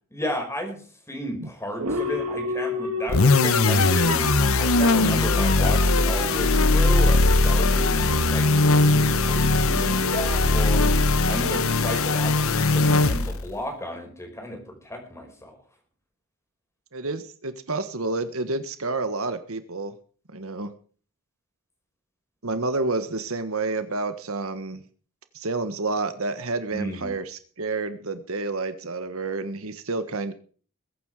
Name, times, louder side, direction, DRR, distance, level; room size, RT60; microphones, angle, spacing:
voice 1, 0.1-10.9 11.3-15.6 26.7-27.1, equal, 15° left, 3 dB, 5.2 m, -33 dB
sound 1, 1.8-12.5, right 2 dB, 90° right, 2.4 m, -33 dB
sound 2, 3.1-13.5, left 3 dB, 65° left, 1.1 m, -20 dB
voice 2, 16.9-19.9 20.3-20.7 22.4-24.8 25.3-30.3, right 3 dB, 70° right, 10 dB, 1.5 m, -29 dB
22.0 x 9.6 x 4.9 m, 0.42 s
head